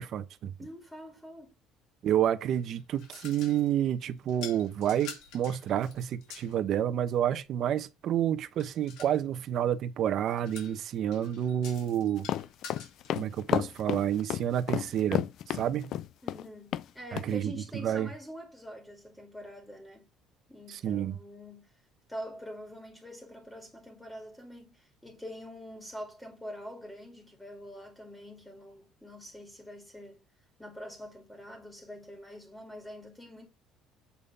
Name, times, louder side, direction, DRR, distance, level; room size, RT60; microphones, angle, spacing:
voice 1, 0.0-0.5 2.0-12.3 13.1-15.2 15.5-15.9 17.1-17.5 17.8-18.1 20.7-21.2, right 10 dB, 45° right, 0.9 m, -29 dB
voice 2, 0.6-1.6 16.2-20.1 20.5-21.8 22.1-30.2 30.6-33.5, equal, 5° left, 2.1 m, -45 dB
sound 1, 2.5-3.8 4.3-6.6 8.6-9.2 10.3-13.2, left 6 dB, 75° left, 3.3 m, -47 dB
sound 2, 12.2-16.4 16.7-16.8 17.2-17.3, left 11 dB, 50° left, 0.4 m, -31 dB
8.4 x 3.7 x 5.3 m
cardioid pair, 165°, 0 cm